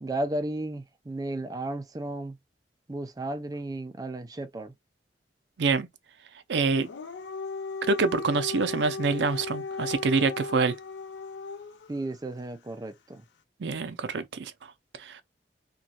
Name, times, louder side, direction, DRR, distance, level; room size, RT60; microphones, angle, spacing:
voice 1, 0.0-2.4 2.9-4.7 11.9-13.2, right 1 dB, 20° right, 0.4 m, -34 dB
voice 2, 6.5-6.9 7.9-10.8 13.6-14.5 15.0-15.2, right 4 dB, 75° right, 0.5 m, -26 dB
Dog, 6.7-11.9, left 4 dB, 80° left, 0.4 m, -37 dB
3.0 x 2.3 x 2.7 m
head